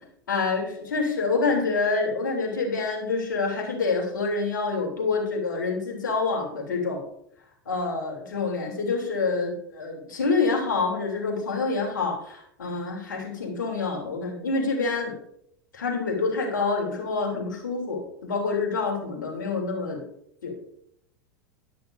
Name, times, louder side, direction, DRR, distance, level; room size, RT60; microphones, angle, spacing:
voice 1, 0.3-7.0 7.7-15.1 15.7-20.0 20.4-20.5, left 4 dB, 70° left, 0 dB, 3.3 m, -27 dB
12.5 x 11.0 x 2.7 m, 0.73 s
figure-of-eight pair, 85°, 11 cm